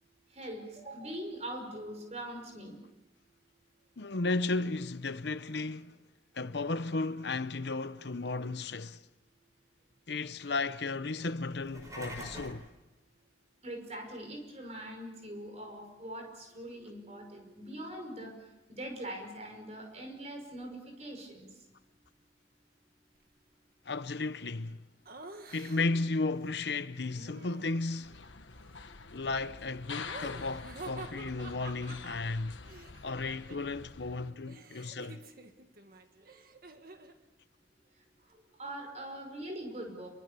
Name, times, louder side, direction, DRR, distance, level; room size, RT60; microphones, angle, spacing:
voice 1, 0.3-2.8 13.6-21.5 38.6-40.1, right 1 dB, 35° right, 5.6 m, -42 dB
voice 2, 4.0-6.0 6.3-9.0 10.1-12.7 23.9-24.8 25.5-28.2 29.1-32.6 33.0-35.2, left 3 dB, 65° left, 0.8 m, -34 dB
sound 1, 11.5-12.7, equal, 20° right, 5.6 m, -44 dB
Laughter, 25.1-26.1 27.1-28.2 30.0-33.8 34.1-37.2, right 2 dB, 50° right, 1.9 m, -49 dB
sound 2, 28.0-34.3, left 5 dB, 90° left, 1.3 m, -47 dB
28.0 x 23.5 x 6.9 m
head